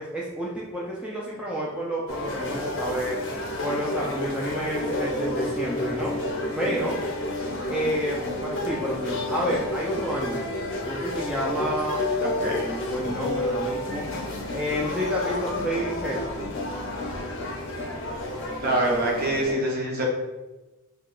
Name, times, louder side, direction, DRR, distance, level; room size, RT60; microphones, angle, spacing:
voice 1, 0.0-7.0 7.7-10.5 10.8-14.1 14.5-16.3, equal, 5° right, -5 dB, 0.3 m, -30 dB
sound 1, 2.1-19.5, left 1 dB, 60° left, 0.5 m, -30 dB
voice 2, 12.2-12.7 18.6-20.1, right 1 dB, 45° right, -2 dB, 0.7 m, -25 dB
2.8 x 2.2 x 3.7 m, 1.1 s
head